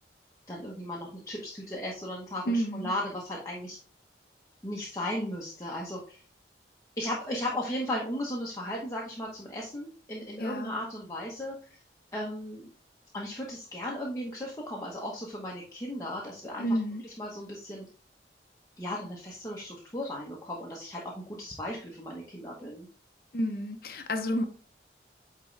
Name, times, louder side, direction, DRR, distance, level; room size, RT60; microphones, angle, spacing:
voice 1, 0.5-3.8 4.6-6.2 7.0-11.8 12.1-12.6 13.1-16.8 17.0-17.8 18.8-22.9, left 1 dB, 20° left, 1.1 m, -36 dB
voice 2, 2.5-2.9 10.4-10.8 16.6-17.0 23.3-24.4, equal, 55° left, 0.8 m, -30 dB
9.1 x 3.7 x 3.3 m
head